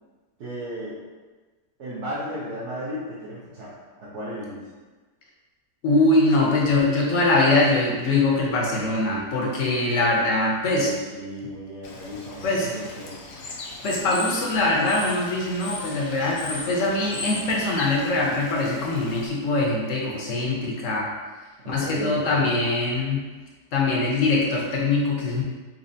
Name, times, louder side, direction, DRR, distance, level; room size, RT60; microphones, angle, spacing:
voice 1, 0.4-1.0 1.8-4.6 10.7-13.2 21.6-22.6, equal, 55° right, -9 dB, 0.9 m, -35 dB
voice 2, 5.8-10.9 12.4-12.7 13.8-21.1 21.7-23.2 23.7-25.4, left 2 dB, 60° left, -3 dB, 0.9 m, -22 dB
Bird / Water, 11.8-19.3, left 3 dB, 80° left, 0.5 m, -37 dB
4.2 x 2.9 x 2.6 m, 1.3 s
omnidirectional pair, 1.8 m